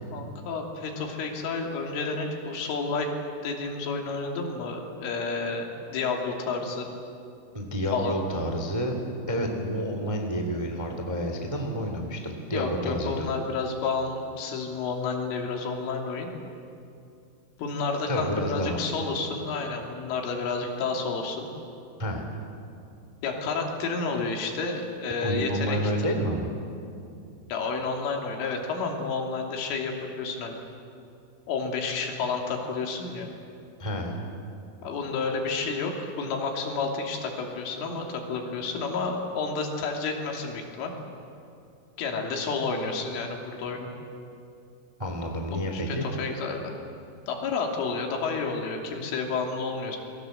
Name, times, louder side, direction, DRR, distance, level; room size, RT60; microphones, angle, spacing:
voice 1, 0.1-3.1 3.4-6.9 7.9-8.2 12.5-16.3 17.6-21.5 23.2-26.1 27.5-30.6 31.5-33.3 34.8-40.9 42.0-43.9 45.7-46.7 47.3-50.0, left 4 dB, 85° left, 1 dB, 5.4 m, -30 dB
voice 2, 7.5-9.0 9.3-13.3 18.1-19.0 22.0-22.2 25.2-26.5 33.8-34.2 45.0-46.0, equal, 15° right, 3 dB, 1.3 m, -29 dB
28.5 x 22.0 x 7.9 m, 2.6 s
omnidirectional pair, 5.5 m